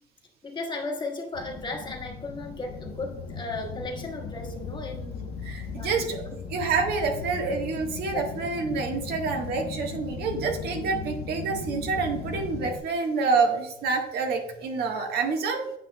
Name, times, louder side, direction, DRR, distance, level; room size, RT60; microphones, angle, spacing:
voice 1, 0.4-5.3 5.7-6.1 8.1-8.2, left 3 dB, 25° left, 1 dB, 1.4 m, -35 dB
sound 1, 1.3-12.8, left 4 dB, 80° left, 0.8 m, -37 dB
voice 2, 5.4-15.7, right 4 dB, 70° right, 3 dB, 1.4 m, -27 dB
8.4 x 5.9 x 2.2 m, 0.83 s
cardioid pair, 110°, 17 cm